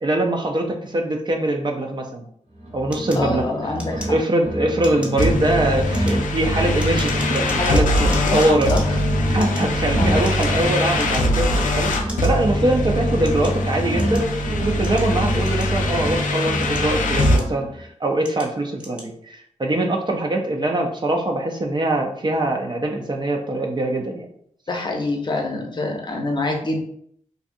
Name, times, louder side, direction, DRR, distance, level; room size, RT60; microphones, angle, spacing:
voice 1, 0.0-2.3 2.7-3.7 4.0-8.7 9.3-24.3, right 1 dB, 35° right, 1 dB, 0.4 m, -23 dB
sound 1, 2.5-4.2 4.4-8.2 8.4-12.2 12.4-16.2 16.4-17.8, right 1 dB, 60° right, 0.9 m, -29 dB
sound 2, 2.9-4.5 4.8-5.2 5.8-8.8 9.3-10.6 10.9-11.5 11.9-12.2 12.8-14.3 14.8-16.0 16.5-17.7 18.2-18.5 18.8-19.1, equal, 10° right, 0.7 m, -39 dB
voice 2, 3.2-4.1 7.4-8.4 8.7-9.0 10.0-10.2 24.7-26.8, left 2 dB, 35° left, 2 dB, 0.6 m, -26 dB
sound 3, 5.2-17.4, left 1 dB, 80° left, 0.4 m, -22 dB
2.6 x 2.3 x 2.5 m, 0.66 s
cardioid pair, 65°, 13 cm